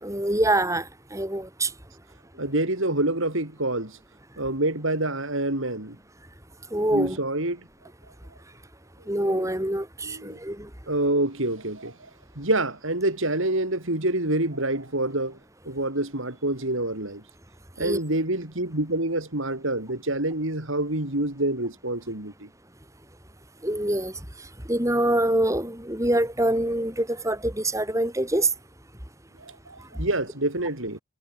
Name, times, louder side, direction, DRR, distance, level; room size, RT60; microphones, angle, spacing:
voice 1, 0.0-1.7 6.7-7.2 9.1-10.7 17.8-18.0 23.6-24.1 24.7-28.5, right 1 dB, 15° right, 4.2 m, -25 dB
voice 2, 2.4-4.0 4.4-6.0 6.9-7.6 9.2-9.4 10.0-10.4 10.9-12.1 12.4-15.4 15.7-17.2 17.8-22.5 29.4-31.0, right 1 dB, 60° right, 3.8 m, -27 dB
head